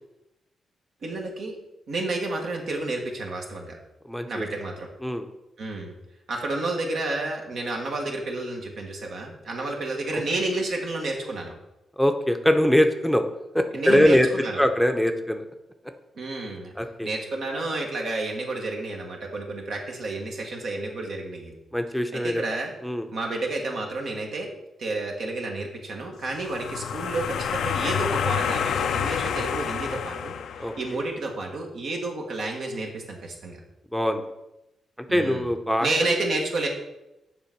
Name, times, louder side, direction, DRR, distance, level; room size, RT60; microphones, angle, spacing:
voice 1, 1.0-1.6 1.9-3.8 4.3-4.9 5.6-5.9 6.3-11.5 13.7-14.6 16.1-16.7 17.0-21.5 22.1-22.7 23.1-24.5 24.8-33.6 35.1-35.5 35.8-36.7, right 2 dB, 75° right, 0 dB, 1.5 m, -30 dB
voice 2, 4.1-4.5 5.0-5.3 10.1-10.2 12.0-13.2 13.5-14.3 14.6-15.4 16.8-17.1 21.7-22.4 22.8-23.1 30.6-30.7 33.9-34.2 35.0-35.9, equal, ahead, 6 dB, 0.6 m, -22 dB
sound 1, 26.3-31.0, left 7 dB, 80° left, 0.4 m, -28 dB
6.9 x 3.9 x 6.0 m, 0.94 s
cardioid pair, 65°, 0 cm